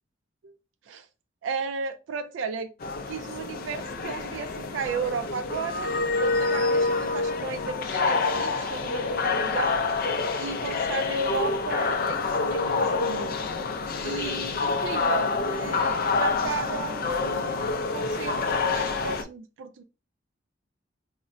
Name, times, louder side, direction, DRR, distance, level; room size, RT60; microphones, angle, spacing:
voice 1, 1.4-2.7 3.1-5.9 6.2-9.9 10.4-13.4 14.0-19.8, right 5 dB, 85° right, 9 dB, 0.3 m, -34 dB
sound 1, 2.8-19.2, left 4 dB, 50° left, 0.4 m, -27 dB
3.6 x 2.1 x 2.5 m, 0.30 s
head